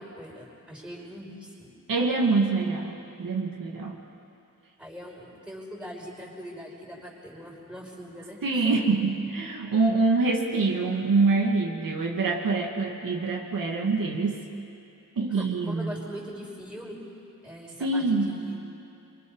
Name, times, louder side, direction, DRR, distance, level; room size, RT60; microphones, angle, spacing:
voice 1, 0.0-1.7 4.8-8.7 15.3-17.0 17.4-18.6, equal, 5° right, -3 dB, 5.4 m, -42 dB
voice 2, 1.9-4.0 8.4-14.4 15.2-16.0 17.8-18.3, right 3 dB, 85° right, -1 dB, 2.4 m, -25 dB
27.0 x 24.5 x 5.6 m, 2.7 s
wide cardioid pair, 125°, 33 cm